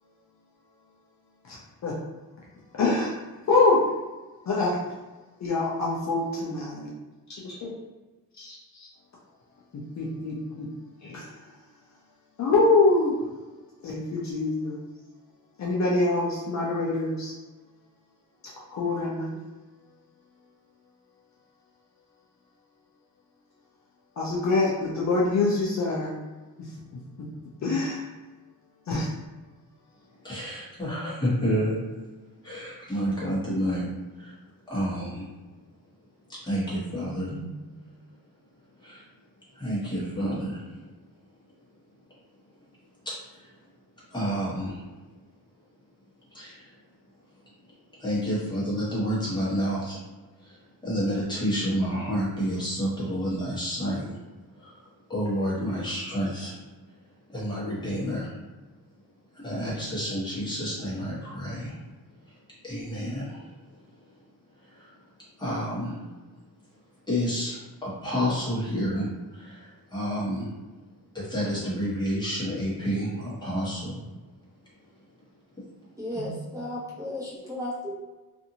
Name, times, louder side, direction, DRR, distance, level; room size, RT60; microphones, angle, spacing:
voice 1, 2.7-3.1 3.5-3.8 4.5-4.8 5.4-6.9 7.3-7.7 8.4-8.9 10.0-10.7 11.0-11.3 12.4-13.2 13.8-14.8 15.6-17.3 18.7-19.4 24.2-26.1 27.6-28.0 28.9-29.1, left 3 dB, 50° left, -4 dB, 0.5 m, -25 dB
voice 2, 30.2-31.8 32.4-33.9 34.2-34.3 34.7-35.2 36.4-37.4 38.8-39.0 39.6-40.6 44.1-44.8 46.3-46.6 48.0-50.0 50.8-54.0 55.1-56.5 57.3-58.3 59.4-61.7 62.6-63.4 65.4-66.0 67.1-69.1 69.3-70.5 71.1-73.9 76.1-76.3, equal, 10° left, -8 dB, 1.1 m, -29 dB
voice 3, 76.0-77.9, left 1 dB, 10° right, -10 dB, 1.0 m, -34 dB
2.6 x 2.5 x 2.7 m, 1.2 s
wide cardioid pair, 150°, 37 cm